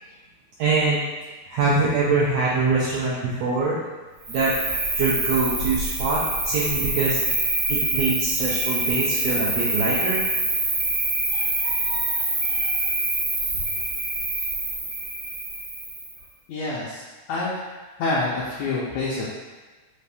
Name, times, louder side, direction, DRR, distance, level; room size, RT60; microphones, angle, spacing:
voice 1, 0.6-1.0 1.5-3.8 4.3-4.5 4.9-7.2 7.7-10.2 11.3-12.7, right 3 dB, 85° right, -7 dB, 1.5 m, -24 dB
Cricket, 4.2-16.2, right 2 dB, 65° right, 1.2 m, -25 dB
voice 2, 16.5-17.7 18.0-19.3, left 2 dB, 80° left, -7 dB, 1.6 m, -27 dB
5.3 x 2.5 x 3.4 m, 1.3 s
omnidirectional pair, 3.8 m